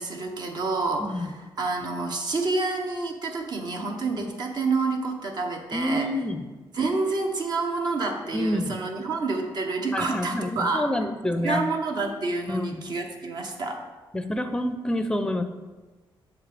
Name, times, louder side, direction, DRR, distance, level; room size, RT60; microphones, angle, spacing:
voice 1, 0.0-6.1 6.7-10.9 11.4-13.8, right 3 dB, 55° right, 3 dB, 0.9 m, -28 dB
voice 2, 1.0-1.3 4.1-4.3 5.7-6.5 8.3-8.8 9.9-11.6 12.5-12.8 14.1-15.4, left 1 dB, 10° left, 8 dB, 0.5 m, -27 dB
7.4 x 6.7 x 3.4 m, 1.3 s
cardioid pair, 130°, 9 cm